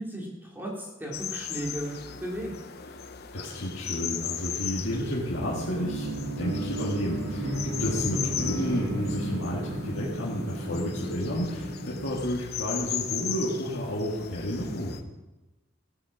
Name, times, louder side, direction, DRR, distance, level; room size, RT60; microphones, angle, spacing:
voice 1, 0.0-2.5, right 1 dB, 10° right, -3 dB, 3.2 m, -35 dB
sound 1, 1.1-15.0, left 9 dB, 55° left, 0.9 m, -37 dB
voice 2, 3.3-6.1 6.4-15.0, equal, 70° left, -6 dB, 2.3 m, -31 dB
sound 2, 5.3-12.9, right 1 dB, 75° right, 2.1 m, -33 dB
15.0 x 8.8 x 6.1 m, 1.1 s
head